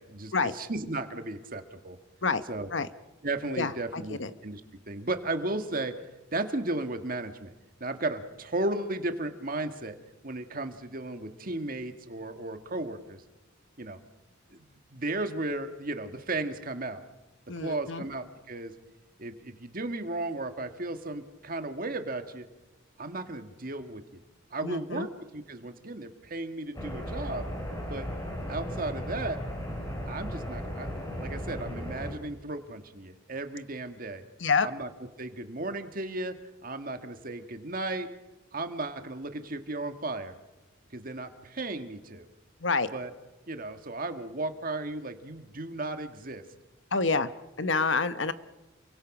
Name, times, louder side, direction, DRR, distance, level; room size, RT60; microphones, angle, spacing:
voice 1, 0.0-2.0 2.5-2.7 3.2-4.6 4.9-6.0 6.3-7.5 7.8-10.0 10.2-13.2 13.8-14.0 14.5-17.0 17.6-18.7 19.2-22.5 23.0-24.2 24.5-27.5 27.9-28.1 28.5-29.4 30.1-30.9 31.2-34.2 34.6-34.9 35.2-38.1 38.5-40.3 40.9-42.3 42.9-43.1 43.5-46.4, right 2 dB, 45° right, 8 dB, 1.7 m, -35 dB
voice 2, 3.6-4.3 17.5-18.0 24.6-25.1 34.4-34.7 42.6-42.9 46.9-47.3 47.6-48.3, left 4 dB, 65° left, 12 dB, 1.1 m, -27 dB
sound 1, 26.7-32.1, equal, 20° left, 4.6 m, -36 dB
29.0 x 24.0 x 6.1 m, 1.1 s
head